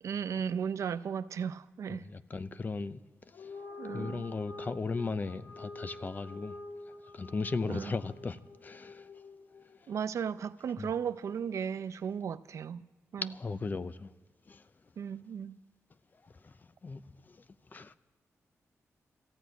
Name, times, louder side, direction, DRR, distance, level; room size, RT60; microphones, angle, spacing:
voice 1, 0.0-2.0 3.8-4.2 7.7-7.9 9.9-12.8 13.1-13.3 15.0-15.6, right 7 dB, 70° right, 0.5 m, -35 dB
voice 2, 1.9-3.0 3.4-3.5 3.9-6.6 7.1-9.0 10.8-10.9 13.2-14.1 14.5-14.6 16.4-16.5 16.8-17.0 17.3-17.4 17.7-17.9, left 4 dB, 35° left, 0.5 m, -36 dB
sound 1, 3.3-9.8, left 3 dB, 80° left, 1.6 m, -47 dB
14.0 x 10.0 x 9.3 m
wide cardioid pair, 105°, 5 cm